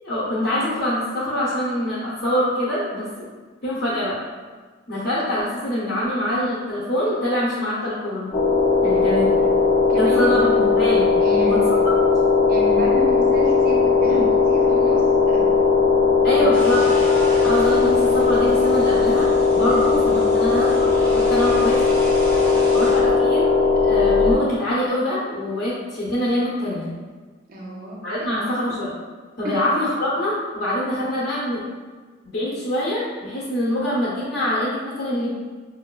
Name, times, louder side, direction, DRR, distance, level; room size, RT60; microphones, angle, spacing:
voice 1, 0.0-3.3 3.6-4.2 4.9-8.3 8.8-9.3 10.0-11.1 11.4-11.8 14.1-14.2 16.2-16.9 17.4-22.0 22.7-26.9 28.0-28.9 29.4-31.7 32.2-35.3, left 1 dB, 55° left, -10 dB, 0.7 m, -24 dB
sound 1, 8.3-24.3, left 4 dB, 85° left, 0.9 m, -18 dB
voice 2, 8.9-9.4 9.9-10.4 11.2-11.7 12.5-15.7 16.3-16.5 22.4-22.8 27.5-28.3 29.4-29.6, right 1 dB, 45° right, -3 dB, 0.5 m, -31 dB
sound 2, 16.5-23.0, left 1 dB, 5° left, 0.5 m, -33 dB
5.3 x 2.2 x 2.3 m, 1.4 s
head